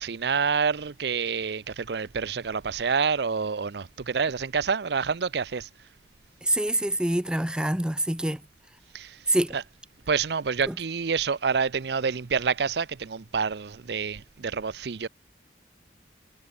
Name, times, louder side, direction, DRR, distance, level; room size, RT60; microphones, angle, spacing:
voice 1, 0.0-5.7 8.9-9.1 9.5-9.6 10.1-15.1, right 5 dB, 65° right, 0.6 m, -27 dB
voice 2, 6.4-8.4 9.3-9.6 10.7-10.8, right 1 dB, 5° right, 0.6 m, -25 dB
head